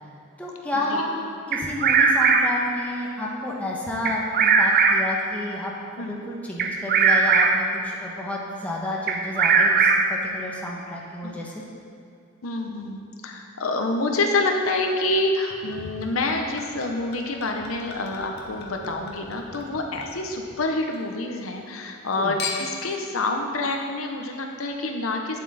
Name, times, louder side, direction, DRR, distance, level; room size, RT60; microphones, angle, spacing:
voice 1, 0.4-5.7 6.0-11.6 22.2-22.4, left 1 dB, 5° left, -4 dB, 1.1 m, -31 dB
Bird vocalization bird call bird song, 1.5-2.7 4.0-5.2 6.6-7.8 9.1-10.3, right 5 dB, 50° right, 0.6 m, -19 dB
voice 2, 12.4-25.4, left 2 dB, 90° left, 3 dB, 0.9 m, -27 dB
Chink clink / Liquid, 15.5-21.0 21.4-22.0 22.4-22.9 23.6-23.7, left 4 dB, 50° left, 1.1 m, -39 dB
9.0 x 7.5 x 4.1 m, 2.5 s
head